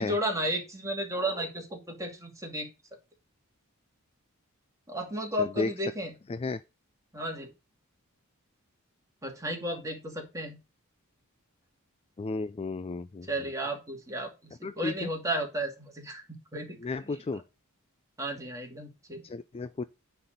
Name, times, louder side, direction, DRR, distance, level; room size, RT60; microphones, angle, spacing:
voice 1, 0.0-2.7 4.9-6.1 7.1-7.5 9.2-10.6 13.3-17.4 18.2-19.2, right 1 dB, 15° right, 2.5 m, -34 dB
voice 2, 12.2-13.3 14.6-14.9 16.8-17.4 19.3-19.8, left 3 dB, 25° left, 0.4 m, -33 dB
9.7 x 4.0 x 6.5 m
head